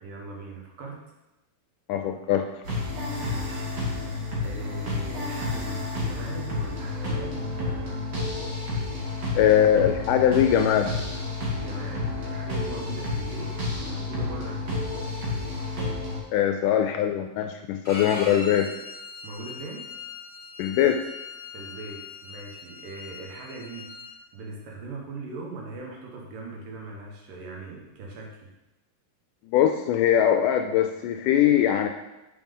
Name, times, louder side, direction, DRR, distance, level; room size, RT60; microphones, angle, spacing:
voice 1, 0.0-1.0 3.1-3.7 4.4-7.9 11.5-14.8 19.2-19.9 21.5-23.9 24.3-28.5, right 3 dB, 70° right, -1 dB, 3.0 m, -40 dB
voice 2, 1.9-2.4 9.4-10.9 16.3-18.7 20.6-21.0 29.5-31.9, left 10 dB, 80° left, 5 dB, 1.9 m, -21 dB
sound 1, 2.6-16.2, left 2 dB, 50° right, 3.1 m, -30 dB
Bowed string instrument, 17.8-24.1, left 3 dB, 35° left, 0.5 m, -40 dB
7.6 x 6.2 x 5.4 m, 0.99 s
omnidirectional pair, 4.0 m